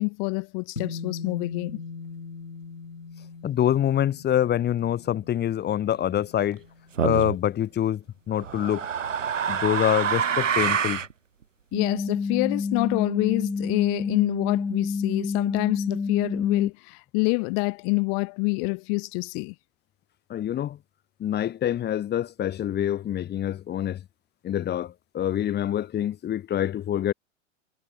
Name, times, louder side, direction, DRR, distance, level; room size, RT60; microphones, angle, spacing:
voice 1, 0.0-1.8 11.7-19.5, left 40 dB or more, 40° left, 1.6 m, -26 dB
sound 1, 0.8-7.3, left 5 dB, 80° left, 3.5 m, -40 dB
voice 2, 3.4-6.6 7.0-8.9 9.5-11.0 20.3-20.8 21.2-24.0 24.4-27.1, left 11 dB, 25° left, 2.4 m, -26 dB
sound 2, 7.0-7.4 8.4-11.1, right 7 dB, 75° right, 3.9 m, -26 dB
sound 3, 11.7-16.7, left 5 dB, 5° left, 0.4 m, -28 dB
figure-of-eight pair, 95°, 39 cm